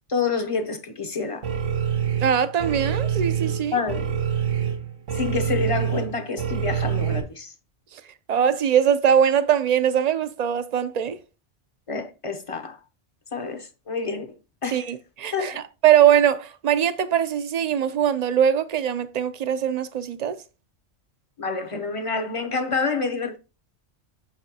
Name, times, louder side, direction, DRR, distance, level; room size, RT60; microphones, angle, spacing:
voice 1, 0.1-1.5 3.7-4.1 5.1-7.5 11.9-12.8 13.3-14.3 14.6-14.9 15.3-15.6 21.4-23.4, left 4 dB, 35° left, 0.7 m, -28 dB
sound 1, 1.4-7.2, right 8 dB, 85° right, 1.3 m, -26 dB
voice 2, 2.2-3.8 8.3-11.2 14.7-20.4, right 9 dB, 50° right, 0.5 m, -21 dB
6.8 x 5.7 x 2.8 m
omnidirectional pair, 1.2 m